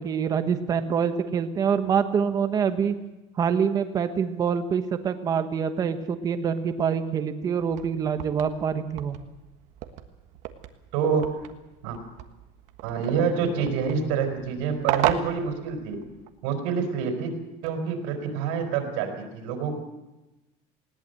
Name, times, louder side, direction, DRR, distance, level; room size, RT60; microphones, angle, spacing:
voice 1, 0.0-3.0 3.4-9.2, right 7 dB, 25° right, 9 dB, 1.3 m, -25 dB
sound 1, 7.6-16.3, right 12 dB, 50° right, 1.4 m, -35 dB
voice 2, 10.9-11.4 11.8-12.0 12.8-16.0 16.4-17.3 17.6-19.7, right 6 dB, 85° right, 5 dB, 4.5 m, -27 dB
20.0 x 18.0 x 7.9 m, 1.0 s
cardioid pair, 170°, 15 cm